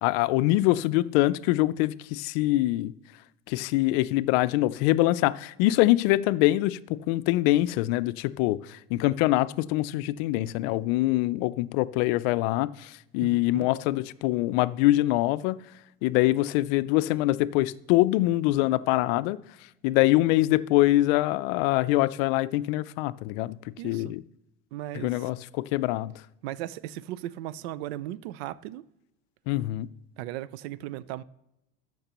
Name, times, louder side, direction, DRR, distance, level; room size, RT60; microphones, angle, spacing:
voice 1, 0.0-2.9 3.5-6.8 7.1-8.6 8.9-15.6 16.0-19.4 19.8-23.6 23.8-24.2 25.0-26.1 29.5-29.9, left 17 dB, 70° left, 0.5 m, -24 dB
voice 2, 13.2-13.7 23.8-24.2 24.7-25.3 26.4-28.9 30.2-31.2, right 14 dB, 80° right, 0.5 m, -37 dB
13.5 x 5.9 x 3.0 m
supercardioid pair, 120°, 31 cm